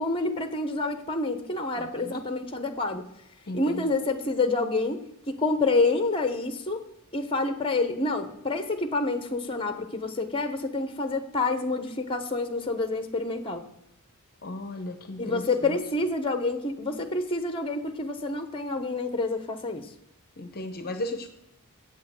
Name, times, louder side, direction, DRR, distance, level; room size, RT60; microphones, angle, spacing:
voice 1, 0.0-3.1 3.5-5.0 5.3-6.9 7.1-13.6 15.2-19.8, left 3 dB, 25° left, 8 dB, 1.0 m, -28 dB
voice 2, 1.7-2.2 3.5-3.9 14.4-15.8 20.4-21.3, left 1 dB, 45° left, 8 dB, 0.8 m, -36 dB
8.4 x 8.4 x 7.7 m, 0.83 s
head